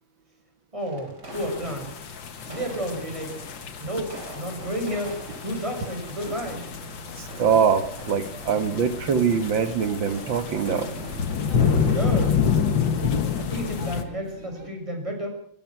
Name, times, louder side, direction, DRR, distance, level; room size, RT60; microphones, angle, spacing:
voice 1, 0.7-1.9 2.5-3.4 3.8-6.7 11.9-12.4 13.4-15.3, equal, 15° right, 3 dB, 6.5 m, -31 dB
sound 1, 0.8-12.4, right 1 dB, 55° right, 5.6 m, -42 dB
sound 2, 1.3-14.0, left 6 dB, 70° left, 2.4 m, -28 dB
sound 3, 6.5-14.7, left 1 dB, 40° right, 4.9 m, -43 dB
voice 2, 7.2-10.9, right 6 dB, 70° right, 11 dB, 2.4 m, -23 dB
23.0 x 19.5 x 6.2 m, 0.63 s
omnidirectional pair, 2.2 m